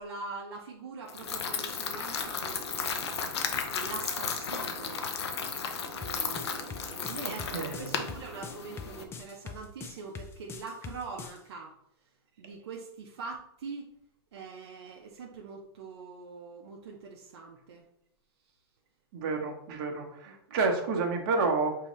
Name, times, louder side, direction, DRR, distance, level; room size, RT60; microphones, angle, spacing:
voice 1, 0.0-5.1 5.9-11.7 12.4-13.9 14.3-17.8 19.9-20.0 20.3-20.4, right 4 dB, 80° right, 0 dB, 0.7 m, -43 dB
sound 1, 1.1-9.0, left 6 dB, 90° left, 0.7 m, -34 dB
sound 2, 6.0-11.4, left 6 dB, 20° left, 0.4 m, -43 dB
voice 2, 7.2-7.9 19.1-21.8, right 4 dB, 55° right, 2 dB, 1.1 m, -30 dB
5.4 x 2.8 x 3.1 m, 0.73 s
hypercardioid pair, 125°, 13 cm